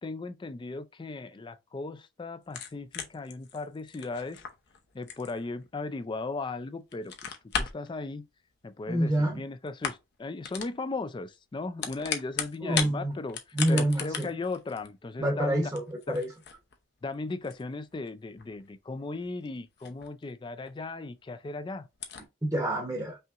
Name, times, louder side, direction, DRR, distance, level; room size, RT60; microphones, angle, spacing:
voice 1, 0.0-4.4 4.9-8.3 8.6-13.4 13.7-15.6 16.1-16.2 17.0-21.9, left 3 dB, 25° left, 0.3 m, -37 dB
sound 1, 2.4-6.5 6.8-7.9 8.9-9.4 9.7-10.2 10.4-10.8 11.6-12.9 13.3-20.3 20.6-20.7 21.2-21.3 21.5-21.6 21.9-22.2, left 7 dB, 55° left, 0.7 m, -37 dB
voice 2, 8.9-9.4 12.6-13.2 13.5-14.3 15.2-16.3 22.4-23.2, right 1 dB, 15° right, 0.8 m, -27 dB
5.5 x 2.9 x 2.4 m
head